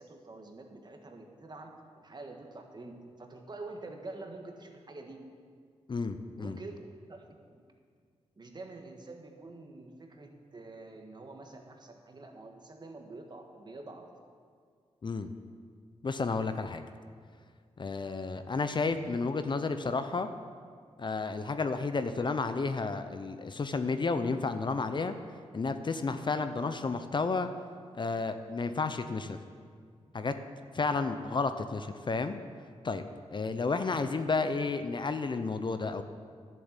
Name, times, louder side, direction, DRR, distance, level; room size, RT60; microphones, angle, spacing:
voice 1, 0.0-5.3 6.4-6.8 7.1-7.7 8.4-14.1, right 2 dB, 40° right, 3 dB, 1.5 m, -47 dB
voice 2, 5.9-6.6 15.0-15.3 16.0-16.8 17.8-20.3 21.0-25.2 25.5-27.5 27.9-29.4 30.1-30.3 30.7-32.4 32.8-33.0 33.3-36.0, left 4 dB, 40° left, 9 dB, 0.6 m, -31 dB
11.0 x 7.7 x 7.4 m, 2.1 s
cardioid pair, 85°, 12 cm